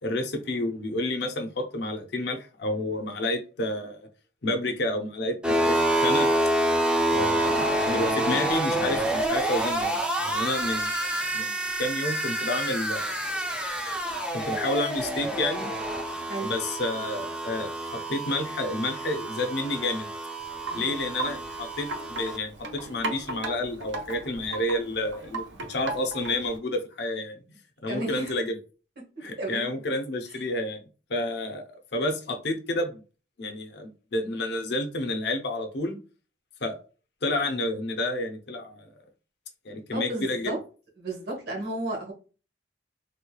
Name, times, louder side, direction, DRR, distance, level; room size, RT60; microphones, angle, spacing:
voice 1, 0.0-4.1 4.4-5.8 6.0-6.3 7.1-11.5 11.8-13.1 14.3-15.7 16.4-20.1 20.7-25.4 25.7-27.4 27.8-28.6 29.2-30.8 31.1-31.6 31.9-33.0 33.4-36.0 36.6-36.8 37.2-38.9 39.6-40.5, left 1 dB, 65° left, 4 dB, 0.7 m, -30 dB
sound 1, 5.4-22.4, right 1 dB, 5° right, 0.5 m, -28 dB
Wind chime, 20.4-26.6, right 3 dB, 85° right, 0.7 m, -37 dB
voice 2, 27.9-28.4 29.4-29.7 39.9-40.6 41.0-42.1, right 2 dB, 60° right, 0 dB, 1.2 m, -33 dB
3.3 x 3.1 x 2.2 m, 0.36 s
head